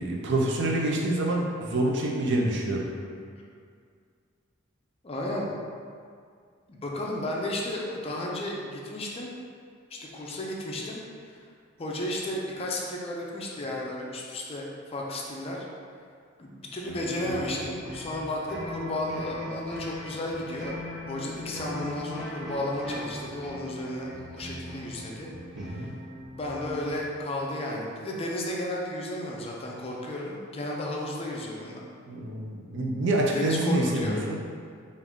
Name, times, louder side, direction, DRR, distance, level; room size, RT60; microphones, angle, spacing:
voice 1, 0.0-2.9 25.6-25.9 32.1-34.4, right 1 dB, 65° right, -2 dB, 0.6 m, -27 dB
voice 2, 5.0-5.5 6.7-9.3 9.9-11.0 11.8-15.7 16.4-20.8 21.1-25.3 25.6-25.9 26.4-31.9 33.3-34.2, left 1 dB, 30° left, -2 dB, 0.5 m, -33 dB
sound 1, 16.8-27.0, left 1 dB, ahead, 0.9 m, -39 dB
3.5 x 2.6 x 3.6 m, 2.2 s
head